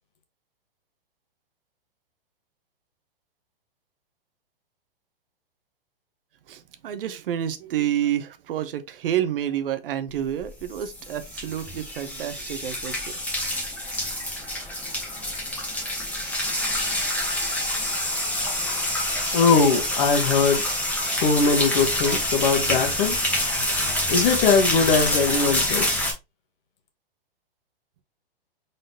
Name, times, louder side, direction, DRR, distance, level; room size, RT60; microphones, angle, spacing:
voice 1, 6.5-13.0, right 10 dB, 65° right, 0.7 m, -29 dB
sound 1, 10.4-26.1, left 1 dB, 5° left, 1.2 m, -27 dB
voice 2, 19.3-20.6 21.0-23.2 24.1-26.1, left 4 dB, 50° left, 1.3 m, -21 dB
4.0 x 3.6 x 2.7 m
hypercardioid pair, 130°, 30 cm